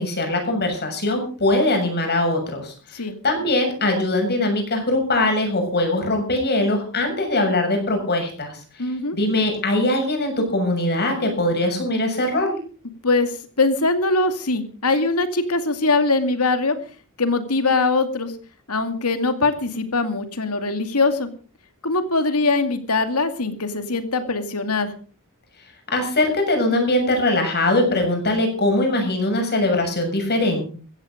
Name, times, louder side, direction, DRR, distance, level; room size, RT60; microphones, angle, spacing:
voice 1, 0.0-8.6 9.1-12.6 25.9-30.6, left 1 dB, 50° left, 4 dB, 7.1 m, -21 dB
voice 2, 8.8-9.2 13.0-16.8 17.2-18.3 18.7-21.3 21.8-24.9, left 3 dB, 80° left, 9 dB, 2.4 m, -22 dB
15.5 x 14.5 x 5.2 m, 0.40 s
head